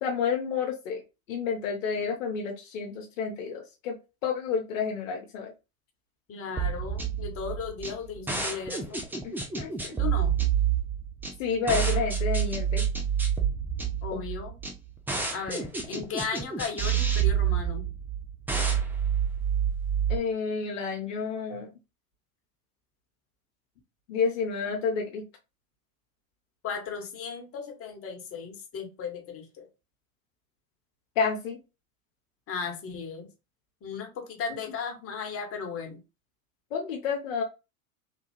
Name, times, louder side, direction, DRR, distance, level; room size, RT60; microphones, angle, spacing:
voice 1, 0.0-1.0 1.3-4.0 4.2-5.5 9.2-10.0 11.4-12.8 14.1-14.2 20.1-21.7 24.1-25.2 31.2-31.6 36.7-37.4, left 5 dB, 65° left, 0 dB, 0.8 m, -30 dB
voice 2, 6.3-9.0 10.0-10.4 14.0-14.5 15.3-17.9 26.6-29.7 32.5-33.3 33.8-36.0, left 6 dB, 30° left, 4 dB, 1.1 m, -36 dB
sound 1, 6.6-20.2, right 8 dB, 5° right, 0.4 m, -28 dB
3.3 x 2.3 x 3.0 m, 0.28 s
figure-of-eight pair, 85°, 43 cm